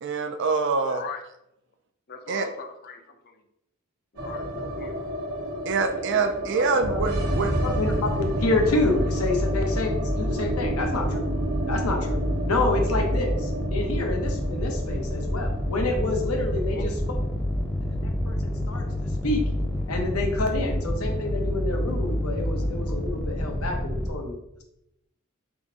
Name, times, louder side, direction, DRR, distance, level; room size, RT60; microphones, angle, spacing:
voice 1, 0.0-1.0 2.3-2.5 5.7-7.6, right 4 dB, 55° right, 6 dB, 0.4 m, -25 dB
voice 2, 0.8-1.2 2.1-3.0 4.1-4.9 16.7-16.8, left 4 dB, 50° left, 5 dB, 0.5 m, -38 dB
sound 1, 4.2-20.3 20.5-20.6 20.9-21.6, right 1 dB, 80° right, 1.0 m, -33 dB
voice 3, 6.1-7.0 7.6-8.1 8.4-11.3 11.7-16.9 17.8-19.4 19.9-24.6, left 2 dB, 85° left, 3 dB, 0.8 m, -28 dB
sound 2, 6.8-24.1, left 1 dB, 5° left, 0.5 m, -28 dB
3.6 x 2.5 x 4.0 m, 0.81 s
head